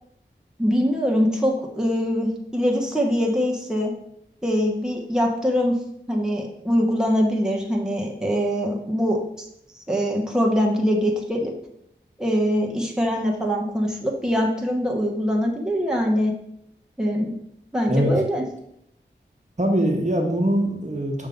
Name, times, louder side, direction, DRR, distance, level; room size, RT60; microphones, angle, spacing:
voice 1, 0.6-3.9 4.4-5.7 6.1-9.5 9.8-11.5 12.2-16.3 17.0-17.3 17.7-18.4, equal, 5° right, -1 dB, 1.2 m, -23 dB
voice 2, 19.6-21.3, right 1 dB, 40° right, 1 dB, 1.3 m, -22 dB
6.4 x 3.7 x 5.1 m, 0.74 s
wide cardioid pair, 40°, 19 cm